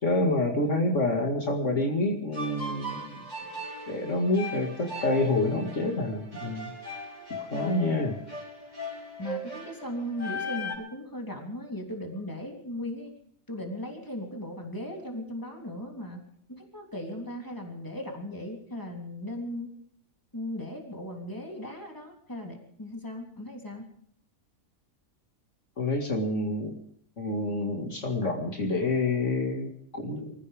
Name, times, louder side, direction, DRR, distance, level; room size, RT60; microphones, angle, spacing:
voice 1, 0.0-3.2 3.9-6.7 7.3-8.1 25.8-26.8 27.2-30.3, left 2 dB, 55° left, 1 dB, 2.4 m, -28 dB
sound 1, 2.3-10.7, left 1 dB, 30° right, 4.6 m, -38 dB
voice 2, 7.5-8.0 9.2-13.1 13.5-16.2 16.5-19.7 20.3-23.9, left 1 dB, 15° left, 1 dB, 3.3 m, -37 dB
25.5 x 15.0 x 3.6 m, 0.65 s
omnidirectional pair, 1.5 m